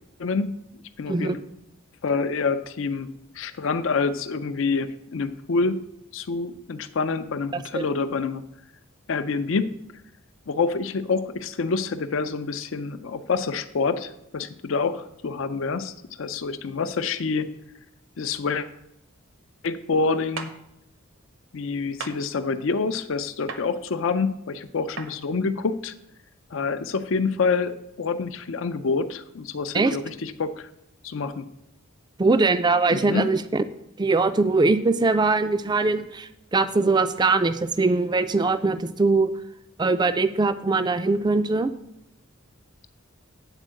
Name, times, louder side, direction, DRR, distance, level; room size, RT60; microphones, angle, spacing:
voice 1, 0.2-0.6 1.0-1.4 2.0-3.1 3.3-5.8 6.1-8.4 9.1-9.7 10.5-15.9 16.2-17.5 18.2-18.7 19.6-20.5 21.5-25.9 26.5-30.7 31.0-31.5 32.9-33.3, left 4 dB, 70° left, 10 dB, 0.5 m, -27 dB
voice 2, 7.5-7.8 29.7-30.0 32.2-33.6 34.0-39.3 39.8-41.7, right 3 dB, 20° right, 12 dB, 0.4 m, -22 dB
sound 1, 20.4-20.5 22.0-22.2 23.5-23.6 25.0-25.1, right 5 dB, 70° right, 0.8 m, -34 dB
9.0 x 4.5 x 7.4 m, 0.80 s
head